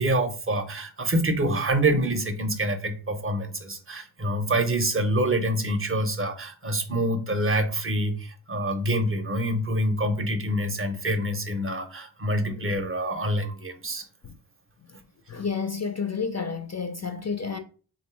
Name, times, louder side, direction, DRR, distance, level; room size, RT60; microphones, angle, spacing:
voice 1, 0.0-14.0, right 1 dB, 25° right, 0.7 m, -26 dB
voice 2, 15.3-17.6, left 5 dB, 35° left, 0.4 m, -30 dB
3.3 x 2.7 x 4.4 m
wide cardioid pair, 75°, 50 cm